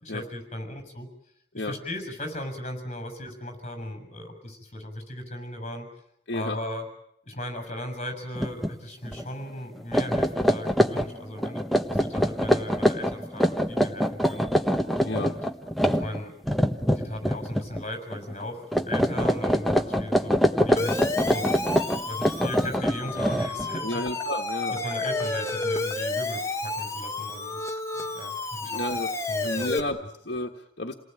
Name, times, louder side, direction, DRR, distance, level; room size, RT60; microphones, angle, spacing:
voice 1, 0.0-1.1 1.5-5.9 6.3-6.9 7.2-14.5 15.0-15.3 16.0-16.3 16.9-21.5 22.0-24.0 24.7-28.3 28.6-29.0 29.3-30.1, left 1 dB, 35° left, 7 dB, 6.5 m, -37 dB
voice 2, 6.3-6.6 15.0-15.3 23.8-24.8 28.6-29.1 29.4-30.0 30.2-30.9, left 2 dB, 65° left, 2 dB, 1.6 m, -31 dB
sound 1, 8.4-8.7 9.1-9.2 9.8-17.8 18.1-18.4 18.7-23.8, equal, ahead, 1.2 m, -24 dB
Siren, 20.8-29.8, left 2 dB, 15° left, 1.4 m, -31 dB
29.0 x 19.0 x 9.1 m, 0.73 s
head